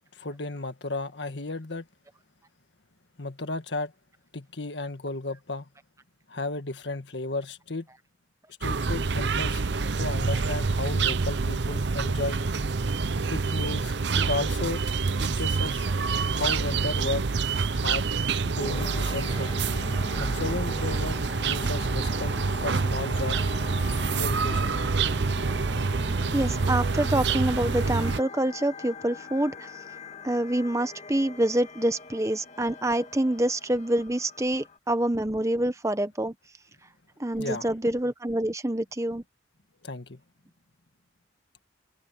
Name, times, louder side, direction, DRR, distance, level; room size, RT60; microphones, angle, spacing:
voice 1, 0.1-1.9 3.2-3.9 4.3-5.7 6.3-7.9 8.6-9.6 10.0-12.4 13.3-14.8 15.2-15.9 16.3-17.3 17.7-18.1 18.4-19.5 20.2-21.2 21.4-23.4 24.1-24.8 37.4-37.7 39.8-40.2, left 2 dB, 70° left, 1.7 m, -33 dB
sound 1, 8.6-28.2, right 4 dB, 65° right, 0.7 m, -27 dB
sound 2, 18.5-34.8, left 3 dB, 40° left, 1.8 m, -42 dB
voice 2, 26.3-29.7 30.2-36.3 37.2-39.2, right 1 dB, 15° right, 0.9 m, -26 dB
head